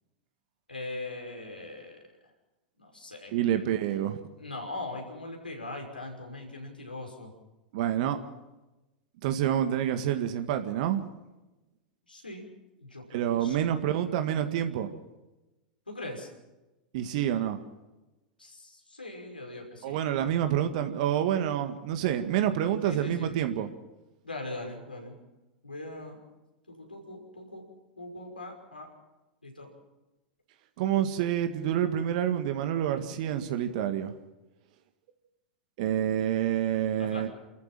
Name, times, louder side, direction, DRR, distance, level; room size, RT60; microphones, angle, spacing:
voice 1, 0.7-2.0 2.8-3.7 4.4-7.3 12.1-12.4 12.8-13.8 15.9-16.3 18.4-20.0 22.8-23.4 24.2-25.1 25.6-26.2 26.7-27.6 28.0-28.9 29.4-29.7 37.0-37.3, left 2 dB, 90° left, 1 dB, 5.7 m, -41 dB
voice 2, 3.3-4.2 7.7-8.2 9.2-11.0 13.1-14.9 16.9-17.6 19.8-23.7 30.8-34.1 35.8-37.3, right 10 dB, 55° right, 8 dB, 1.8 m, -28 dB
29.5 x 14.0 x 7.6 m, 1.0 s
figure-of-eight pair, 90°, 5 cm